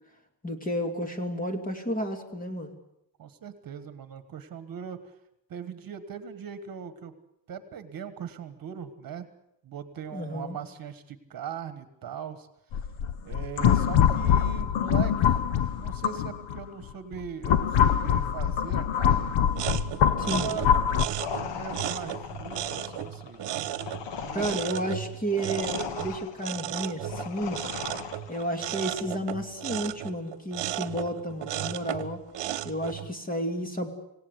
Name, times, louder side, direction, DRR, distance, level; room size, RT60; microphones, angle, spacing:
voice 1, 0.4-2.7 10.1-10.6 20.2-20.5 24.3-27.6 28.3-32.2 32.6-34.0, equal, 20° left, 5 dB, 2.7 m, -32 dB
voice 2, 3.2-5.1 5.5-7.1 7.5-9.3 9.6-12.5 13.2-15.4 15.8-19.4 20.1-20.7 21.4-23.7 24.0-24.7, right 8 dB, 50° right, 11 dB, 1.6 m, -40 dB
sound 1, 12.7-16.6 17.1-21.1, left 9 dB, 90° left, 1.2 m, -24 dB
sound 2, 19.5-33.1, right 12 dB, 65° right, 1.2 m, -35 dB
sound 3, 21.2-28.6, left 8 dB, 70° left, 1.5 m, -38 dB
26.5 x 17.5 x 8.2 m, 0.82 s
cardioid pair, 155°, 45 cm